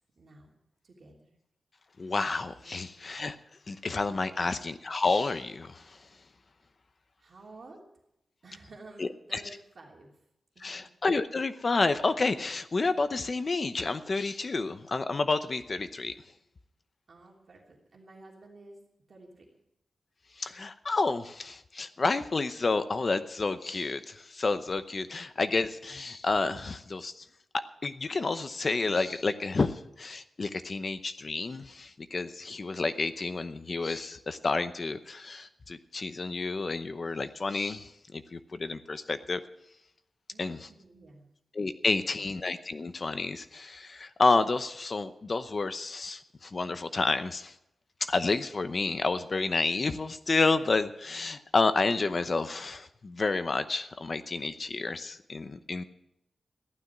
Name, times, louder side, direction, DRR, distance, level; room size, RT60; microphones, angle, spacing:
voice 1, 0.2-0.5 0.8-1.3 2.6-3.0 4.2-4.6 7.2-8.0 8.4-10.1 10.5-10.9 17.1-18.8 19.1-19.5 40.3-41.3 41.9-42.3, right 2 dB, 50° right, -1 dB, 3.2 m, -52 dB
voice 2, 2.0-3.4 3.7-6.0 9.0-9.4 10.6-16.2 20.4-27.2 27.5-39.4 40.4-40.7 41.5-47.5 48.0-55.8, left 3 dB, 40° left, 10 dB, 0.8 m, -30 dB
15.0 x 12.0 x 6.1 m, 0.81 s
wide cardioid pair, 175°, 0 cm